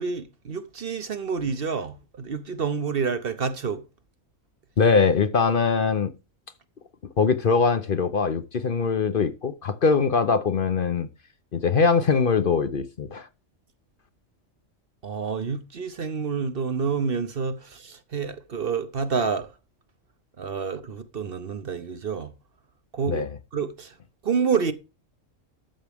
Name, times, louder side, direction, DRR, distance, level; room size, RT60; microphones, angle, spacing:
voice 1, 0.0-3.8 15.0-19.5 20.4-22.3 22.9-23.2 23.5-23.9 24.2-24.7, right 5 dB, 50° right, 1.0 m, -28 dB
voice 2, 4.8-6.1 7.2-11.1 11.5-13.3 23.1-23.3, left 5 dB, 50° left, 0.9 m, -22 dB
13.0 x 7.2 x 3.6 m
omnidirectional pair, 1.3 m